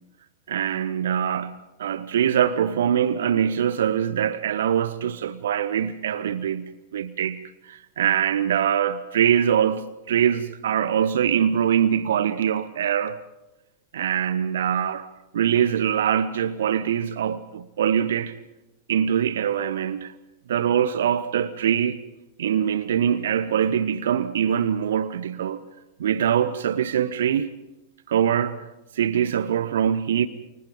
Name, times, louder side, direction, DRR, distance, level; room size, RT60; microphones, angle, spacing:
voice 1, 0.5-13.2 13.9-15.1 15.3-18.3 18.9-20.1 20.5-22.0 22.4-25.6 26.0-27.6 28.1-28.6 28.9-30.3, right 9 dB, 60° right, 0.8 m, -23 dB
29.5 x 29.0 x 3.8 m
figure-of-eight pair, 90°, 0 cm